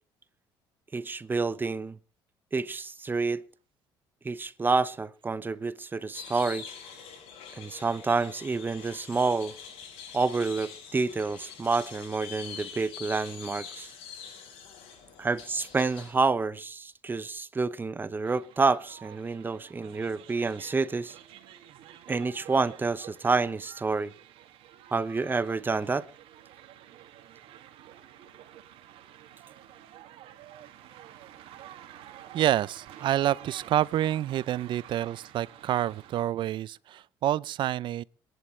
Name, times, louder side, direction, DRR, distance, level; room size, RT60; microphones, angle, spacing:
voice 1, 0.9-2.0 2.5-3.4 4.2-6.7 7.6-9.5 10.1-13.9 15.2-21.2 22.1-24.1 24.9-26.1, right 4 dB, 20° right, 0.9 m, -28 dB
sound 1, 6.1-16.1, left 7 dB, 80° left, 6.6 m, -45 dB
sound 2, 18.2-36.2, right 11 dB, 70° right, 2.2 m, -50 dB
voice 2, 32.3-38.0, right 12 dB, 55° right, 0.6 m, -28 dB
27.0 x 11.0 x 3.3 m
cardioid pair, 105°, 9 cm